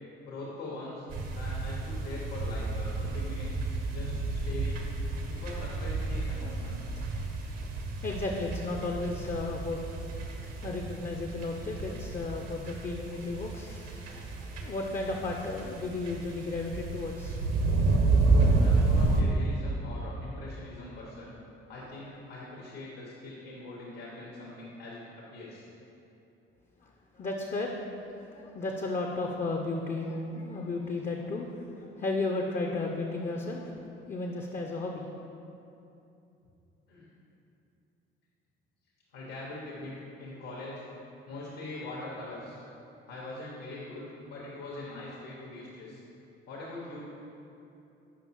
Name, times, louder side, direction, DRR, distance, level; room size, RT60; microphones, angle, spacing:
voice 1, 0.2-1.1 1.3-4.9 5.3-6.8 18.6-21.4 21.7-25.7 36.9-37.1 39.1-39.9 40.2-40.8 41.3-42.6 43.1-46.0 46.4-47.0, left 2 dB, 70° left, -5 dB, 1.1 m, -42 dB
sound 1, 1.1-19.2, right 3 dB, 55° right, 0.8 m, -30 dB
voice 2, 8.0-9.8 10.6-17.4 26.8-27.7 28.2-33.7 34.1-35.1, left 2 dB, 25° left, 1 dB, 0.5 m, -34 dB
7.1 x 5.3 x 3.0 m, 2.8 s
figure-of-eight pair, 45°, 30 cm